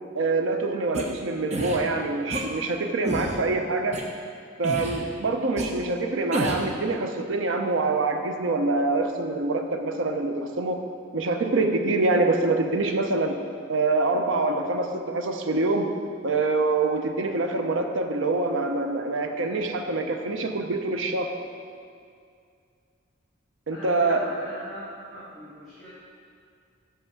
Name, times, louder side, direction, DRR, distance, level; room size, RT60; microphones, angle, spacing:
voice 1, 0.1-4.0 4.6-10.8 11.1-13.4 13.7-15.9 16.2-21.3 23.7-24.2, right 3 dB, 70° right, 5 dB, 0.6 m, -25 dB
sound 1, 0.9-1.0 1.5-1.8 2.3-2.4 3.0-3.4 3.9-4.0 4.6-5.0 5.6-5.7 6.3-6.7, right 1 dB, 35° right, 0.8 m, -29 dB
voice 2, 23.7-25.9, equal, ahead, -14 dB, 1.7 m, -40 dB
6.4 x 5.6 x 5.8 m, 2.3 s
head